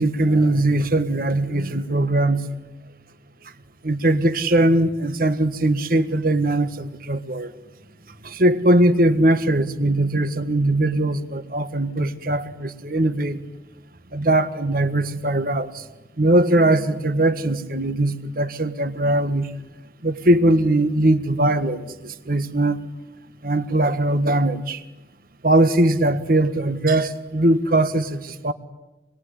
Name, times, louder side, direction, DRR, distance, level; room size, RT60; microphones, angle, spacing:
voice 1, 0.0-2.5 3.8-7.5 8.2-13.4 14.1-15.8 16.2-19.5 20.0-22.8 23.4-24.8 25.4-28.5, right 1 dB, 50° right, 1.6 m, -20 dB
26.5 x 22.0 x 10.0 m
head